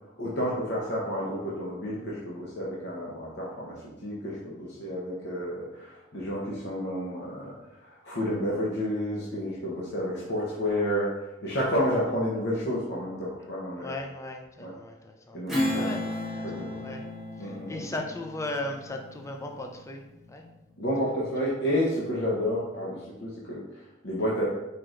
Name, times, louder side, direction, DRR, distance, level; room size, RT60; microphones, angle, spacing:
voice 1, 0.2-13.9 14.6-14.7 15.3-15.8 16.4-16.8 17.4-17.8 20.8-24.5, equal, 60° left, -6 dB, 0.9 m, -30 dB
voice 2, 13.8-15.4 15.7-17.0 17.4-20.4, left 2 dB, 15° left, 3 dB, 0.4 m, -37 dB
Strum, 15.5-20.4, left 1 dB, ahead, 1.0 m, -34 dB
4.6 x 4.5 x 2.5 m, 0.99 s
head